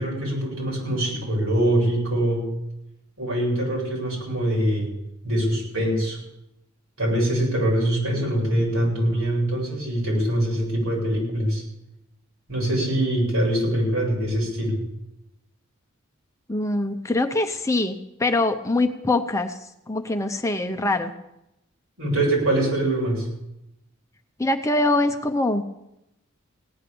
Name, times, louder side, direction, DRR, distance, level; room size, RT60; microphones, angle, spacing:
voice 1, 0.0-2.4 3.2-4.9 5.2-6.2 7.0-11.6 12.5-14.8 22.0-23.3, right 1 dB, 75° right, -3 dB, 7.8 m, -23 dB
voice 2, 16.5-19.6 19.9-21.1 24.4-25.6, left 2 dB, 15° left, 7 dB, 0.6 m, -23 dB
18.0 x 10.0 x 6.9 m, 0.87 s
head